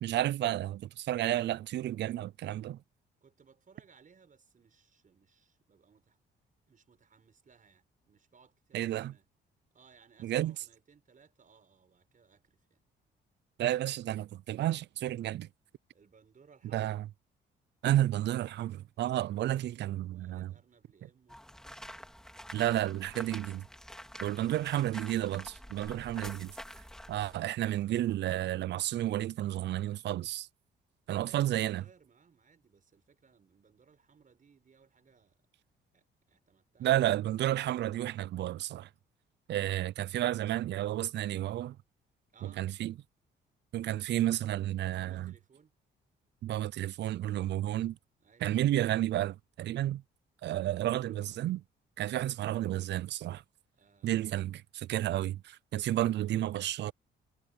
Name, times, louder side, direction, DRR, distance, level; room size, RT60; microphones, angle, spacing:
voice 1, 0.0-2.8 8.7-9.1 10.2-10.6 13.6-15.5 16.7-17.0 17.8-20.5 22.5-23.7 24.2-26.5 27.1-30.5 31.1-31.8 36.8-38.9 39.5-41.8 42.4-42.9 43.7-45.3 46.4-48.0 48.4-50.0 50.4-51.6 52.0-53.4 54.0-56.9, right 13 dB, 65° right, 0.4 m, -31 dB
voice 2, 3.2-6.2 6.7-9.3 9.7-12.8 15.9-17.0 20.1-21.4 24.3-24.8 25.8-26.2 31.1-31.4 31.7-35.5 35.9-37.1 42.3-42.7 45.0-45.7 48.2-48.6 53.8-54.4, right 6 dB, 40° right, 6.1 m, -63 dB
sound 1, 21.3-27.4, equal, 5° left, 3.8 m, -47 dB
cardioid pair, 90°, 20 cm